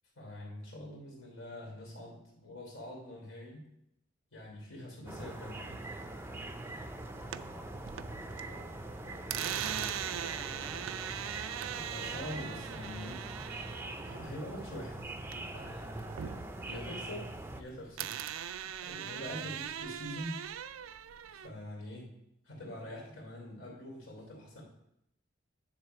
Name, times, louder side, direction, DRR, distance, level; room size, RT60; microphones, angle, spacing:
voice 1, 0.1-3.7 4.3-5.9 11.6-13.3 14.0-15.0 15.4-16.4 16.6-18.2 18.6-20.4 21.3-22.1 22.4-24.6, left 1 dB, 90° left, -2 dB, 3.0 m, -45 dB
sound 1, 5.1-17.6, right 2 dB, 10° right, 0.4 m, -43 dB
sound 2, 7.0-8.4 8.7-15.6 16.0-17.6 18.0-21.5, right 10 dB, 85° right, 0.4 m, -40 dB
voice 2, 7.3-10.7 16.3-16.6 19.3-19.6, equal, 50° left, -5 dB, 1.7 m, -53 dB
10.5 x 3.5 x 5.7 m, 0.80 s
head